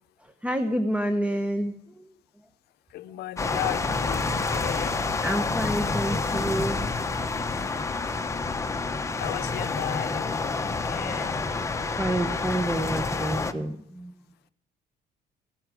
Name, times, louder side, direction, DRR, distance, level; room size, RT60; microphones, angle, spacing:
voice 1, 0.4-1.7 4.3-4.4 5.2-6.9 12.0-14.1, right 1 dB, 10° right, 9 dB, 0.9 m, -28 dB
voice 2, 3.2-4.2 4.5-4.9 9.2-10.3 10.9-11.3, left 15 dB, 75° left, 15 dB, 0.6 m, -34 dB
sound 1, 3.4-13.5, left 3 dB, 15° left, 1.0 m, -28 dB
16.0 x 10.0 x 6.2 m, 0.76 s
cardioid pair, 110°, 17 cm